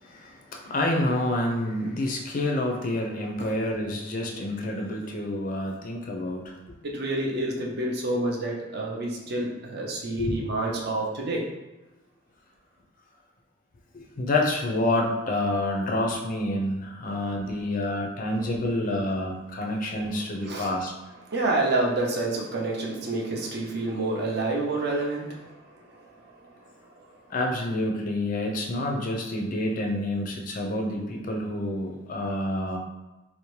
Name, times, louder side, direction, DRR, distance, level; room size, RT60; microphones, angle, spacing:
voice 1, 0.0-6.5 10.2-10.3 13.9-20.9 27.3-32.8, left 1 dB, 40° left, 1 dB, 0.4 m, -28 dB
voice 2, 6.8-11.5 20.4-20.7 21.3-25.5 25.9-26.3, right 2 dB, 55° right, -1 dB, 0.5 m, -28 dB
2.7 x 2.0 x 3.0 m, 1.0 s
head